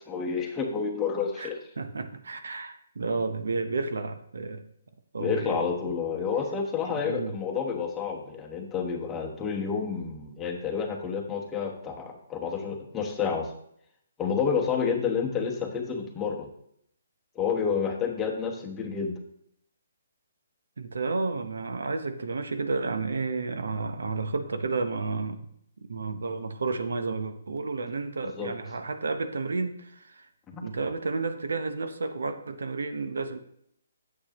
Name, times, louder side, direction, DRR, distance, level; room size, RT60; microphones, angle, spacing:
voice 1, 0.1-1.6 5.2-13.5 14.2-16.5 17.3-19.2 28.2-28.5 30.5-30.6, left 6 dB, 15° left, 0 dB, 1.2 m, -29 dB
voice 2, 1.4-4.6 5.1-5.7 6.8-7.4 20.8-25.5 25.8-30.3 30.6-33.4, right 3 dB, 75° right, 9 dB, 0.7 m, -31 dB
8.5 x 7.5 x 3.0 m, 0.70 s
hypercardioid pair, 145°, 0 cm